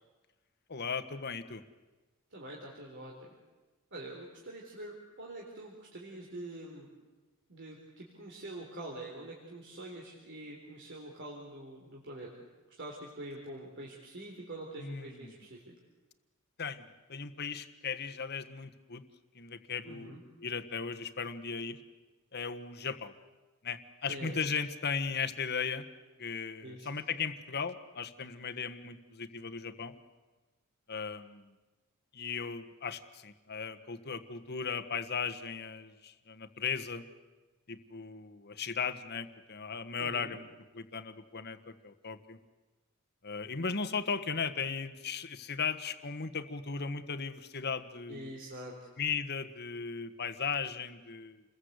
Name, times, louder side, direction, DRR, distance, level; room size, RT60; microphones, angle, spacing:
voice 1, 0.7-1.6 14.8-15.3 16.6-19.0 19.3-21.8 22.3-23.1 23.6-25.9 26.2-29.9 30.9-31.5 32.1-37.0 37.7-40.5 40.7-42.4 43.2-48.4 49.0-51.4, left 5 dB, 50° left, 11 dB, 1.4 m, -37 dB
voice 2, 2.3-3.3 3.9-6.9 7.5-12.3 12.8-15.6 19.9-20.2 24.1-24.4 26.6-27.0 40.0-40.4 48.1-48.9, right 1 dB, 55° right, -1 dB, 4.0 m, -45 dB
29.5 x 21.5 x 8.2 m, 1.2 s
head